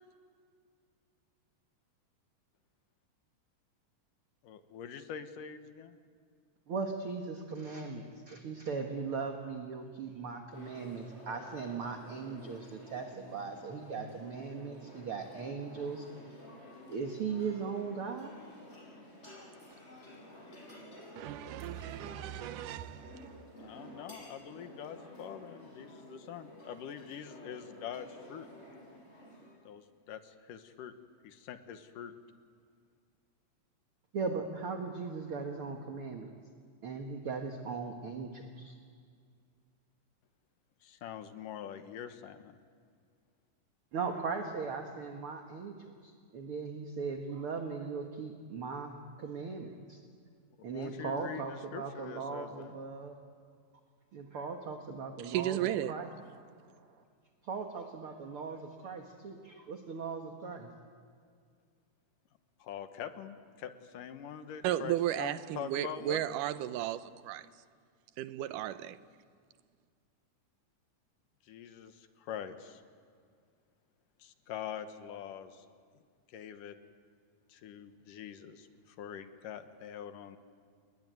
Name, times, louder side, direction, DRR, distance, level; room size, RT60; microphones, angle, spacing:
voice 1, 4.4-6.0 23.6-28.5 29.7-30.9 31.2-32.1 40.8-42.6 50.7-52.7 62.6-66.3 71.4-72.8 74.2-75.7 76.3-76.8 77.5-80.4, left 9 dB, 75° left, 2.8 m, -44 dB
voice 2, 6.7-16.4 16.9-18.4 34.1-36.3 36.8-38.8 43.9-50.0 50.6-53.2 54.1-55.6 55.9-56.1 56.5-56.9 57.4-60.7, right 5 dB, 50° right, 2.1 m, -39 dB
sound 1, 10.5-29.5, left 1 dB, 20° left, 7.1 m, -52 dB
voice 3, 21.2-23.3 55.2-56.0 64.6-67.5 68.2-69.0, right 12 dB, 80° right, 2.4 m, -34 dB
29.5 x 20.5 x 9.4 m
omnidirectional pair, 3.8 m